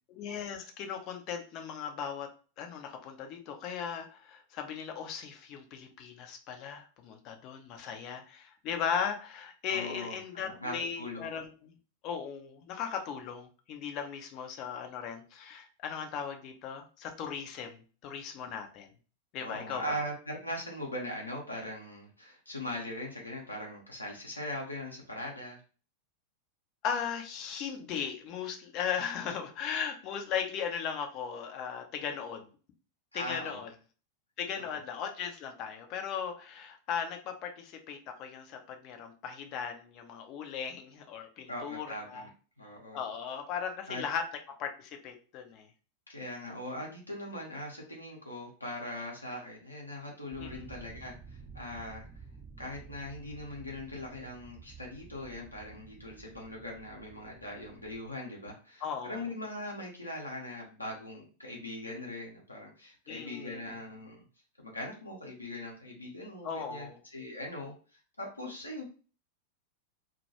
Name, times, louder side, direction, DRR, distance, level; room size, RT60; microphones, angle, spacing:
voice 1, 0.1-2.3 2.6-11.7 12.0-18.9 19.3-20.0 26.8-32.5 33.1-33.7 34.4-42.2 42.9-44.3 44.6-45.7 50.4-50.7 58.8-59.3 63.1-63.6 66.4-67.0, left 7 dB, 40° left, 5 dB, 0.5 m, -37 dB
voice 2, 9.7-11.3 19.4-25.6 33.1-33.6 34.6-34.8 41.5-42.3 42.6-43.0 43.9-44.0 46.1-52.1 52.6-64.2 64.6-67.7 68.2-68.9, left 1 dB, 85° left, -1 dB, 0.7 m, -40 dB
sound 1, 50.3-58.1, right 4 dB, 15° right, 0.5 m, -51 dB
2.2 x 2.1 x 2.8 m, 0.37 s
figure-of-eight pair, 90°, 0 cm